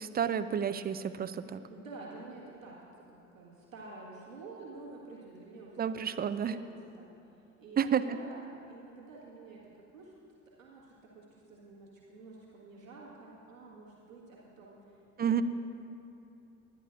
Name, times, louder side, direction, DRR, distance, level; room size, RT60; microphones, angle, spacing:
voice 1, 0.0-1.6 5.8-6.6 7.8-8.0 15.2-15.4, right 8 dB, 25° right, 12 dB, 0.5 m, -30 dB
voice 2, 1.7-2.8 3.1-6.0 6.2-7.1 7.6-10.1 10.6-15.4, right 3 dB, 90° right, -5 dB, 1.5 m, -49 dB
23.5 x 10.5 x 2.5 m, 2.6 s
figure-of-eight pair, 50°, 39 cm